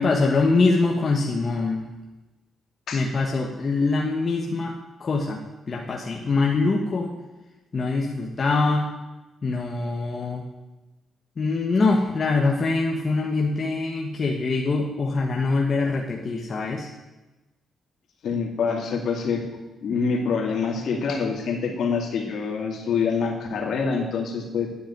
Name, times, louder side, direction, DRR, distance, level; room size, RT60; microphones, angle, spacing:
voice 1, 0.0-1.8 2.9-4.7 5.0-5.4 5.7-7.1 7.7-8.9 9.4-10.4 11.4-16.9, left 3 dB, 30° left, 0 dB, 1.3 m, -23 dB
voice 2, 18.2-19.4 19.8-24.7, left 5 dB, 60° left, 1 dB, 2.7 m, -26 dB
10.5 x 8.8 x 8.9 m, 1.1 s
cardioid pair, 160°, 0 cm